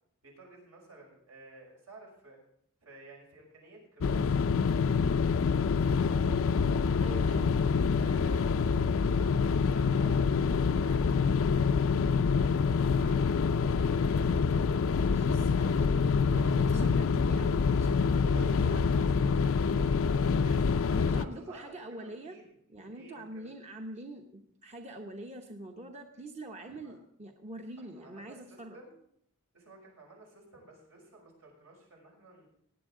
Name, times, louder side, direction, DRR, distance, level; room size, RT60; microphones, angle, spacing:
voice 1, 0.2-2.4 2.8-6.3 6.8-7.2 8.0-10.3 10.7-12.7 13.0-15.3 16.3-17.1 18.2-20.8 21.0-23.5 26.6-27.0 27.8-29.0 29.5-32.5, right 2 dB, 80° right, -1 dB, 5.8 m, -54 dB
sound 1, 4.0-21.3, left 5 dB, 65° left, 0.4 m, -26 dB
voice 2, 7.0-7.5 15.0-19.3 20.9-22.4 22.7-28.8, right 1 dB, 30° right, 3 dB, 0.9 m, -45 dB
18.0 x 9.1 x 3.7 m, 0.68 s
head